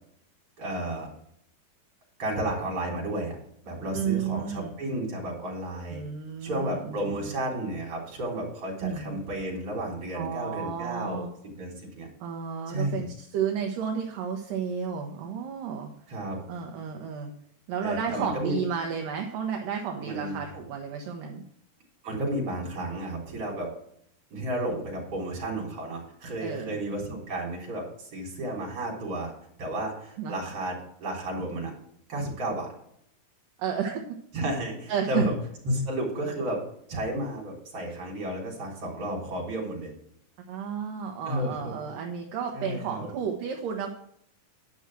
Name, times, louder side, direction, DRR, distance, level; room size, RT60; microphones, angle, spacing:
voice 1, 0.6-1.1 2.2-3.4 3.6-6.0 6.4-12.1 12.7-13.0 16.1-16.4 17.8-18.6 20.0-20.4 22.0-23.7 24.3-29.3 29.6-31.7 32.1-32.7 34.3-35.3 35.6-36.6 36.9-39.9 41.3-41.8 42.5-43.1, right 1 dB, 40° right, -2 dB, 4.4 m, -32 dB
voice 2, 3.9-4.7 5.9-7.3 8.8-9.2 10.1-11.3 12.2-15.9 16.5-17.3 17.7-21.4 26.4-26.8 30.2-30.4 33.6-34.2 34.9-35.3 40.5-43.9, right 7 dB, 70° right, 2 dB, 2.7 m, -32 dB
10.5 x 6.3 x 6.2 m, 0.70 s
omnidirectional pair, 4.1 m